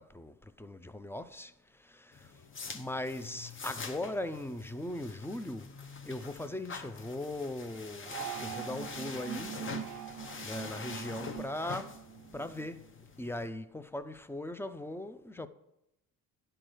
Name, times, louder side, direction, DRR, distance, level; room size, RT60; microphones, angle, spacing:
voice 1, 0.0-2.3 2.7-5.7 6.0-9.6 10.4-12.0 12.3-12.8 13.2-15.5, left 1 dB, 5° left, 0.5 m, -39 dB
sound 1, 2.1-13.5, left 5 dB, 35° left, 0.9 m, -45 dB
sound 2, 8.0-12.7, right 11 dB, 55° right, 0.5 m, -43 dB
9.8 x 4.5 x 6.4 m
cardioid pair, 85°, 37 cm